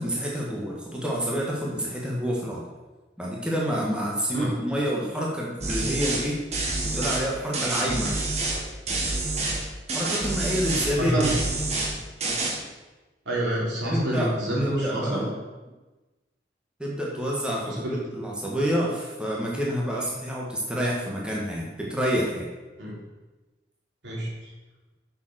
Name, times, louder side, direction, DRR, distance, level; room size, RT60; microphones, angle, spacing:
voice 1, 0.0-2.6 3.2-6.4 6.8-8.2 9.9-11.3 13.9-14.3 14.6-15.3 16.8-22.5, equal, 5° right, -4 dB, 1.6 m, -28 dB
sound 1, 5.6-6.2 6.5-7.2 7.5-8.6 8.9-9.6 9.9-10.9 11.2-11.9 12.2-12.5, right 2 dB, 35° right, 1.6 m, -27 dB
voice 2, 11.0-11.4 13.2-15.3 17.6-18.0 22.8-23.0 24.0-24.5, right 1 dB, 85° right, -4 dB, 3.4 m, -27 dB
7.1 x 6.7 x 6.3 m, 1.2 s
head